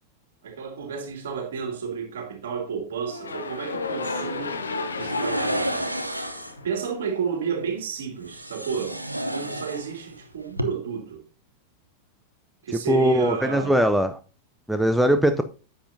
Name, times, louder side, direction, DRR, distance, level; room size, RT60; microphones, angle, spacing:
voice 1, 0.4-4.6 5.0-6.0 6.6-9.0 9.3-11.2 12.6-13.8, right 6 dB, 60° right, 2.6 m, -31 dB
sound 1, 3.0-7.2, left 4 dB, 70° left, 1.0 m, -33 dB
sound 2, 5.0-6.6 8.2-10.2 10.5-10.6, equal, 85° right, 0.8 m, -30 dB
voice 2, 12.9-14.2 14.7-15.4, equal, 5° right, 0.6 m, -20 dB
10.0 x 7.7 x 2.7 m
figure-of-eight pair, 90°, 0 cm